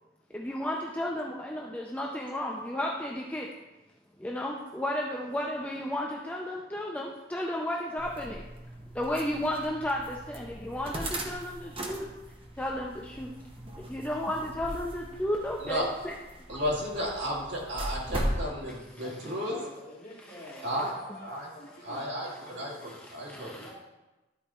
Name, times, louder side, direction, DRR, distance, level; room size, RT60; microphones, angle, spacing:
voice 1, 0.3-3.5 4.2-8.4 8.9-12.0 12.6-13.3 13.8-16.1 16.5-16.6 19.0-19.3 20.2-20.7 21.9-22.0 22.8-23.7, left 1 dB, 10° left, -1 dB, 0.5 m, -33 dB
sound 1, 8.0-18.5, right 1 dB, 30° right, 0.9 m, -39 dB
voice 2, 16.5-19.7 20.6-20.9 21.2-21.5 21.8-23.6, equal, 65° right, -4 dB, 2.4 m, -33 dB
voice 3, 19.4-22.0 22.4-22.6 23.6-23.7, left 1 dB, 40° left, -3 dB, 1.9 m, -47 dB
12.0 x 4.2 x 4.3 m, 1.1 s
head